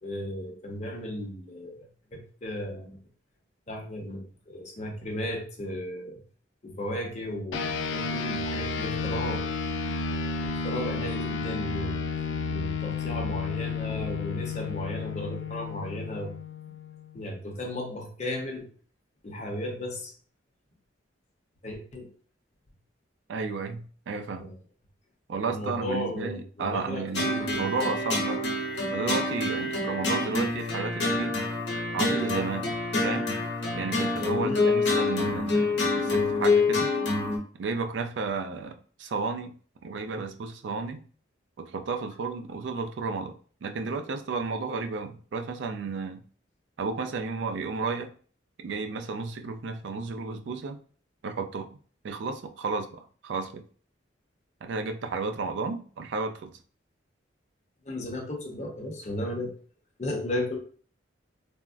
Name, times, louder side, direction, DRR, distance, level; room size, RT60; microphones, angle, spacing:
voice 1, 0.0-3.0 3.7-6.2 6.6-9.4 10.5-12.0 12.5-16.3 16.7-16.8 17.1-18.7 19.2-20.1 21.6-22.1 24.4-24.5 25.5-27.7 34.4-34.6 57.8-59.5 60.0-60.6, left 1 dB, 40° left, 1 dB, 0.7 m, -35 dB
sound 1, 7.5-17.3, left 4 dB, 85° left, 0.4 m, -32 dB
voice 2, 23.3-24.5 25.3-28.4 28.9-31.4 31.9-32.7 33.0-33.3 33.8-36.9 37.6-39.5 39.8-41.0 41.6-46.2 46.8-48.1 48.6-50.8 51.2-51.8 52.0-53.6 54.6-56.5, right 4 dB, 70° right, 6 dB, 0.4 m, -33 dB
sound 2, 27.1-37.4, left 2 dB, 60° left, 0.9 m, -27 dB
3.5 x 2.0 x 2.4 m, 0.43 s
head